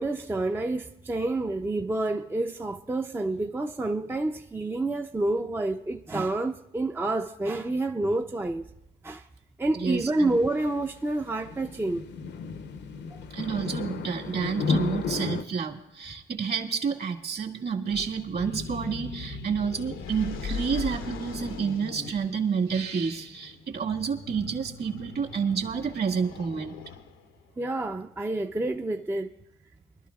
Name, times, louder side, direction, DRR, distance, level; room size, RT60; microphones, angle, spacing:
voice 1, 0.0-8.7 9.0-9.3 9.6-12.1 13.1-13.2 27.6-29.3, right 2 dB, 10° right, 0.4 m, -28 dB
voice 2, 9.7-10.4 13.3-26.7, right 6 dB, 55° right, 1.8 m, -29 dB
sound 1, 9.9-15.4, left 5 dB, 60° left, 0.7 m, -33 dB
sound 2, 17.9-27.4, left 4 dB, 90° left, 0.9 m, -39 dB
25.0 x 12.0 x 2.3 m
cardioid pair, 90°, 20 cm